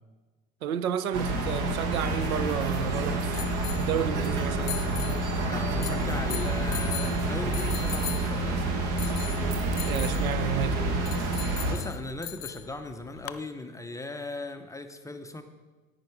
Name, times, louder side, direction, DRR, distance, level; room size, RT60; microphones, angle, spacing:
voice 1, 0.6-3.4 3.8-4.8 9.9-10.9, right 9 dB, 70° right, 0.7 m, -31 dB
sound 1, 1.1-11.8, right 2 dB, 45° right, 1.7 m, -28 dB
sound 2, 1.8-13.4, left 13 dB, 60° left, 0.7 m, -41 dB
voice 2, 5.5-8.8 11.6-15.4, left 2 dB, 5° left, 0.6 m, -38 dB
10.5 x 9.1 x 4.8 m
figure-of-eight pair, 80°, 44 cm